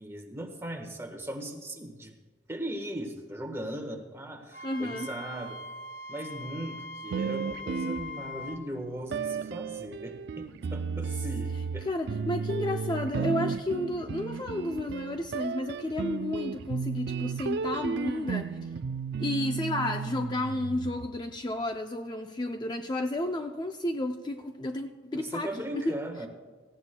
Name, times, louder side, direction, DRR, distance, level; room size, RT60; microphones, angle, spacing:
voice 1, 0.0-2.1 2.5-5.6 6.1-11.9 25.1-26.3, right 1 dB, 15° right, 3 dB, 1.3 m, -38 dB
Wind instrument woodwind instrument, 4.5-8.6, left 1 dB, 55° left, 0.8 m, -42 dB
voice 2, 4.6-5.1 11.8-18.7 19.2-25.5 25.7-26.0, left 1 dB, 25° left, 5 dB, 0.4 m, -32 dB
sound 1, 7.1-8.6 9.1-21.3, right 5 dB, 60° right, 0.4 m, -34 dB
18.0 x 15.5 x 2.2 m, 1.4 s
head